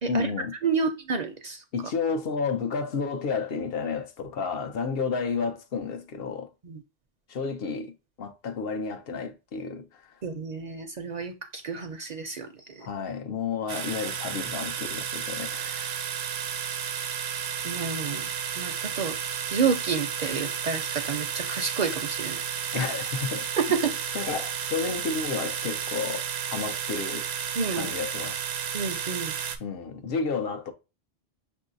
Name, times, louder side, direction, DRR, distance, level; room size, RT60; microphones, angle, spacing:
voice 1, 0.1-0.5 1.7-6.5 7.3-10.1 12.8-16.0 22.7-23.5 24.1-26.2 26.5-27.3 27.7-28.4 29.6-30.7, left 5 dB, 70° left, 0.9 m, -31 dB
voice 2, 0.6-1.6 6.6-6.8 10.2-12.9 17.6-18.3 18.6-19.2 19.5-22.4 22.7-22.8 23.7-23.8 27.6-27.9 28.7-29.3, right 5 dB, 55° right, 0.5 m, -30 dB
sound 1, 13.7-29.6, right 8 dB, 90° right, 0.9 m, -32 dB
6.1 x 2.7 x 2.5 m
omnidirectional pair, 1.0 m